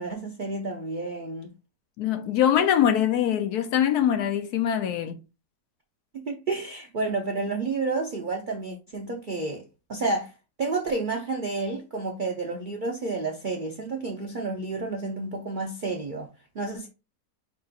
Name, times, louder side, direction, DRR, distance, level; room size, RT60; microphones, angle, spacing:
voice 1, 0.0-1.5 6.1-9.6 9.9-10.3 10.6-16.3 16.5-16.9, right 3 dB, 70° right, 0.4 m, -30 dB
voice 2, 2.0-5.2, left 10 dB, 70° left, 1.1 m, -23 dB
5.2 x 2.4 x 4.0 m
omnidirectional pair, 1.8 m